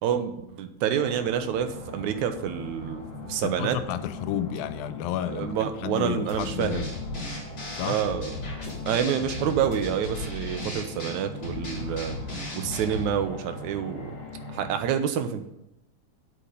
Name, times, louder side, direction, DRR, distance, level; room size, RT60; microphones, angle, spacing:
voice 1, 0.0-3.8 5.3-6.9 7.8-8.4 8.9-12.2 12.5-14.1 14.5-15.4, right 9 dB, 70° right, 2.1 m, -28 dB
sound 1, 0.9-14.9, left 2 dB, 50° left, 3.2 m, -40 dB
voice 2, 3.4-6.9 7.7-8.0, left 11 dB, 90° left, 2.4 m, -31 dB
sound 2, 6.3-13.1, left 2 dB, 30° left, 3.7 m, -36 dB
8.9 x 8.3 x 5.4 m
omnidirectional pair, 4.0 m